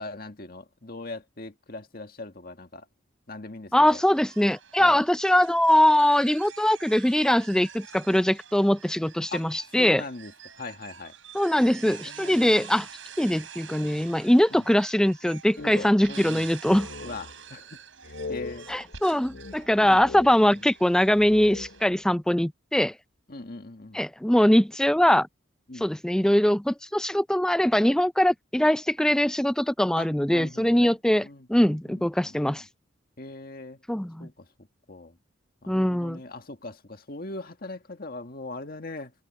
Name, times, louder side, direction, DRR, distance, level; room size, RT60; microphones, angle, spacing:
voice 1, 0.0-2.9 3.3-4.0 4.8-5.0 9.3-9.5 9.8-11.1 11.8-12.7 14.5-14.6 15.6-16.5 17.0-17.8 18.0-18.7 19.8-20.0 23.3-24.0 25.7-25.9 29.9-31.0 31.2-32.7 33.2-33.8 34.2-34.5 34.9-35.2 35.6-39.1, left 2 dB, 50° left, 1.9 m, -40 dB
voice 2, 3.7-10.0 11.3-12.9 13.2-16.9 18.7-22.9 23.9-25.3 25.8-32.6 33.9-34.3 35.7-36.2, left 1 dB, 5° left, 0.4 m, -22 dB
sound 1, 3.9-21.9, right 8 dB, 80° right, 5.6 m, -47 dB
sound 2, 15.6-16.4 16.6-17.6 18.0-20.8 21.1-22.1, left 3 dB, 80° left, 1.1 m, -41 dB
head